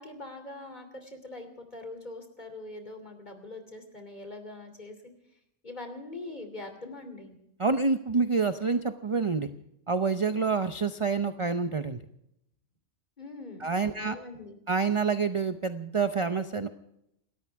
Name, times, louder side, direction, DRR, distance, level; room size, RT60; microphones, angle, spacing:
voice 1, 0.0-5.0 5.6-7.4 13.2-13.7 13.9-14.6, left 2 dB, 35° left, 6 dB, 3.1 m, -42 dB
voice 2, 7.6-9.5 9.9-12.0 13.6-14.2 14.7-16.7, right 4 dB, 30° right, 9 dB, 0.6 m, -27 dB
29.0 x 13.5 x 3.5 m, 0.79 s
omnidirectional pair, 1.3 m